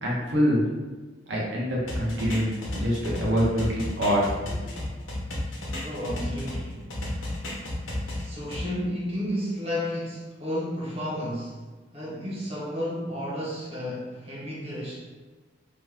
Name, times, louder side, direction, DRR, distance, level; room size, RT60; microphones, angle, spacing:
voice 1, 0.0-0.6 1.3-4.5, equal, 75° right, -5 dB, 0.8 m, -25 dB
sound 1, 1.9-6.6 6.9-8.6, left 1 dB, 90° left, 0.9 m, -32 dB
voice 2, 5.8-6.9 8.2-11.6 11.9-15.1, equal, 30° right, -6 dB, 0.9 m, -32 dB
3.0 x 2.1 x 3.5 m, 1.3 s
head